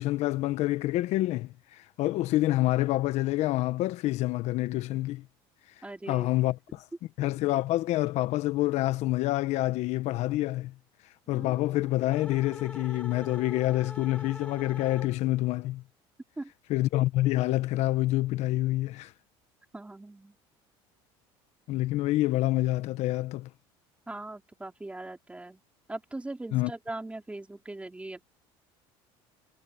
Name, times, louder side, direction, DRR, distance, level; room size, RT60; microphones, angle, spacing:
voice 1, 0.0-5.2 6.1-6.8 7.2-10.7 11.3-15.8 16.7-19.1 21.7-23.5 26.5-26.7, left 17 dB, 65° left, 1.1 m, -27 dB
voice 2, 5.8-6.3 16.4-16.5 19.7-20.4 24.1-25.6 25.9-28.2, right 2 dB, 10° right, 4.1 m, -40 dB
sound 1, 11.3-15.5, left 2 dB, 10° left, 1.5 m, -45 dB
supercardioid pair, 100°, 12 cm